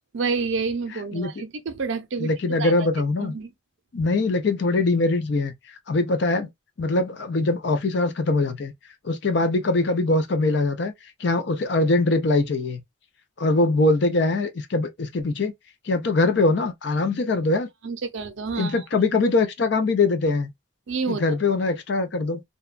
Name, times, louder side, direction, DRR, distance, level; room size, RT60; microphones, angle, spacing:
voice 1, 0.1-2.3 2.6-2.7 3.2-3.5 17.8-18.8 20.9-21.2, right 4 dB, 65° right, 0.5 m, -28 dB
voice 2, 2.2-3.3 3.9-5.5 5.9-6.5 6.8-8.7 9.0-10.9 11.2-12.8 13.4-15.5 15.8-17.7 18.6-20.5 21.1-22.4, left 2 dB, 55° left, 0.5 m, -22 dB
2.8 x 2.2 x 2.3 m
head